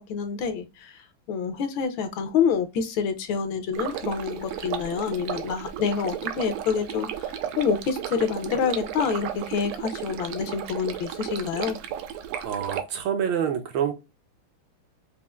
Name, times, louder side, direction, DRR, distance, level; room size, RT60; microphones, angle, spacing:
voice 1, 0.0-11.8, left 6 dB, 75° left, 1.3 m, -27 dB
Stream, 3.7-12.8, right 10 dB, 90° right, 1.5 m, -34 dB
voice 2, 12.4-13.9, right 8 dB, 75° right, 1.2 m, -27 dB
5.4 x 2.4 x 2.3 m
omnidirectional pair, 2.3 m